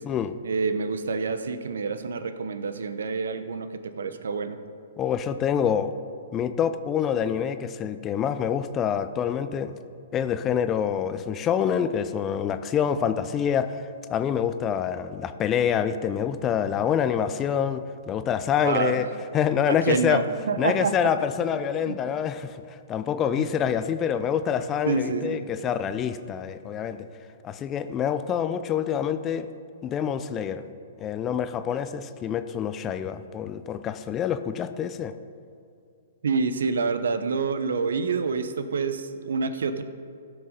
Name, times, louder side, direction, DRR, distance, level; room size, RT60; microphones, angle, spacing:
voice 1, 0.4-4.6 18.6-19.0 19.7-21.1 21.8-22.0 23.3-23.4 24.8-25.4 36.2-39.8, right 4 dB, 75° right, 10 dB, 0.9 m, -27 dB
voice 2, 5.0-5.9 6.3-9.7 10.1-13.8 14.1-19.1 19.3-20.2 20.6-27.0 27.4-29.5 29.8-30.6 31.0-35.1, left 8 dB, 25° left, 11 dB, 0.6 m, -26 dB
16.5 x 6.3 x 5.1 m, 2.5 s
hypercardioid pair, 130°, 0 cm